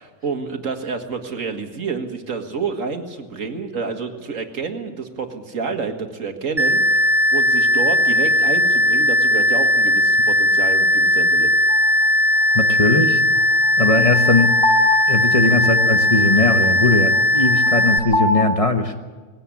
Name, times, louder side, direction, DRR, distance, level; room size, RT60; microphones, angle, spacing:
voice 1, 0.0-11.5, right 5 dB, 75° right, 5 dB, 2.1 m, -29 dB
sound 1, 6.6-18.0, left 1 dB, 20° right, 1.3 m, -17 dB
sound 2, 11.7-11.8 13.6-18.4, left 2 dB, 45° left, 2.3 m, -25 dB
voice 2, 12.5-13.2 13.8-14.6 15.1-19.0, left 3 dB, 25° left, 5 dB, 1.3 m, -19 dB
19.5 x 16.5 x 8.5 m, 1.4 s
omnidirectional pair, 1.4 m